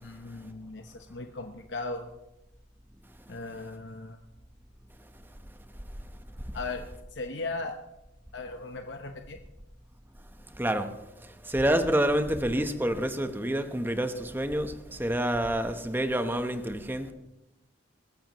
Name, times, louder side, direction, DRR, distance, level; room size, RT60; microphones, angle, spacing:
voice 1, 0.0-2.1 3.3-4.2 6.5-7.8 8.3-9.4, left 3 dB, 65° left, 0.9 m, -37 dB
voice 2, 10.6-10.9 11.4-17.1, right 1 dB, 10° right, 0.9 m, -28 dB
21.5 x 14.5 x 3.1 m
head